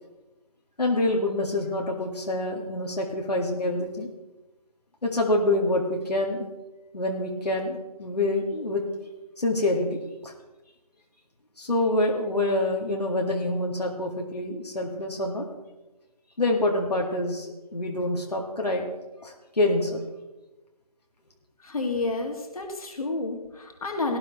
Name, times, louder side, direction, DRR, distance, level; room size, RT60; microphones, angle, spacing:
voice 1, 0.8-4.1 5.0-6.5 6.9-8.8 9.4-10.3 11.6-15.5 16.4-18.9 19.2-20.0, left 2 dB, 85° left, 0 dB, 2.1 m, -26 dB
voice 2, 21.6-24.2, left 3 dB, 65° left, 1 dB, 2.4 m, -30 dB
18.0 x 11.5 x 3.2 m, 1.1 s
figure-of-eight pair, 150°, 20 cm